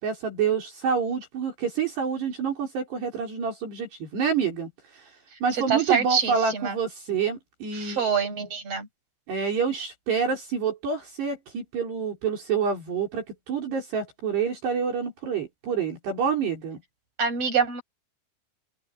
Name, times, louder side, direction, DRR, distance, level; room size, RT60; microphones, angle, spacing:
voice 1, 0.0-5.1 5.4-8.0 9.3-16.8, right 6 dB, 60° right, 6.8 m, -27 dB
voice 2, 5.5-6.8 7.7-8.9 17.2-17.8, right 6 dB, 30° right, 7.7 m, -26 dB
open air
omnidirectional pair, 5.6 m